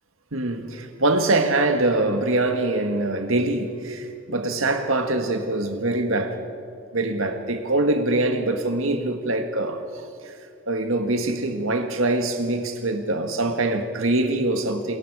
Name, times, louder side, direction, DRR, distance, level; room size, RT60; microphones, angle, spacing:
voice 1, 0.3-6.4 6.9-10.3 10.7-15.0, right 2 dB, 70° right, 1.8 m, -24 dB
27.5 x 22.0 x 4.9 m
head